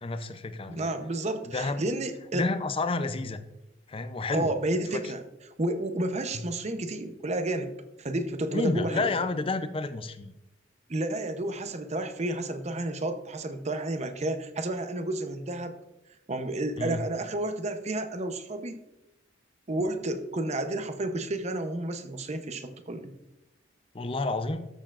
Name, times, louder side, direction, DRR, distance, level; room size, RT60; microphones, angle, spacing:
voice 1, 0.0-0.9 1.5-1.8 2.3-3.4 3.9-4.5 6.3-6.4 8.5-10.3 16.8-17.0 23.9-24.7, left 3 dB, 30° left, 10 dB, 0.5 m, -30 dB
voice 2, 0.7-2.5 4.3-5.2 5.6-7.7 8.0-9.1 10.9-15.8 16.3-18.8 19.7-23.1, right 1 dB, 35° right, 8 dB, 0.7 m, -31 dB
13.0 x 6.8 x 2.5 m, 0.95 s
head